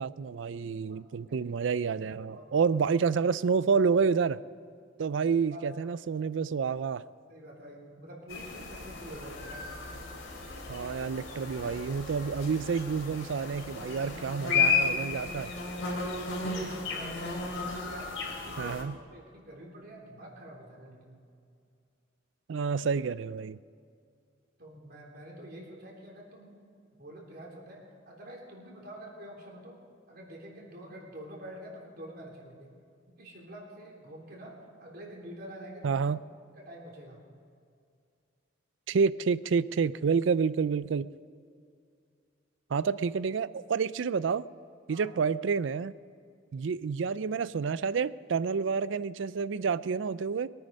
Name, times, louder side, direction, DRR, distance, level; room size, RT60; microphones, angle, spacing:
voice 1, 0.0-4.4 5.0-7.0 10.7-15.5 18.6-18.9 22.5-23.6 35.8-36.2 38.9-41.1 42.7-44.4 44.9-45.9 46.5-50.5, right 5 dB, 75° right, 17 dB, 0.4 m, -29 dB
voice 2, 1.8-2.8 5.5-5.7 7.3-9.7 16.4-17.3 17.7-18.1 18.4-21.2 24.6-26.5 27.0-29.8 30.1-32.7 33.2-36.1 36.5-37.2 44.9-45.1, right 1 dB, 55° right, -2 dB, 3.5 m, -47 dB
sound 1, 8.3-18.8, left 4 dB, 80° left, 3.2 m, -33 dB
22.5 x 9.3 x 5.2 m, 2.3 s
head